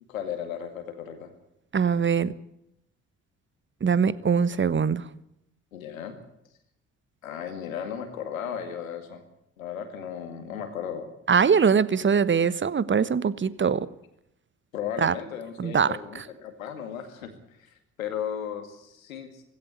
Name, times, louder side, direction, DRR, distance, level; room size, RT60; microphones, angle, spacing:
voice 1, 0.1-1.3 5.7-6.1 7.2-9.2 9.6-11.1 14.7-17.3 17.6-17.7 18.0-19.4, left 8 dB, 85° left, 8 dB, 2.3 m, -35 dB
voice 2, 1.7-2.3 3.8-5.0 11.3-13.9 15.0-15.1 15.6-16.0, right 6 dB, 30° right, 18 dB, 1.1 m, -22 dB
17.5 x 16.5 x 9.7 m, 0.79 s
hypercardioid pair, 45°, 40 cm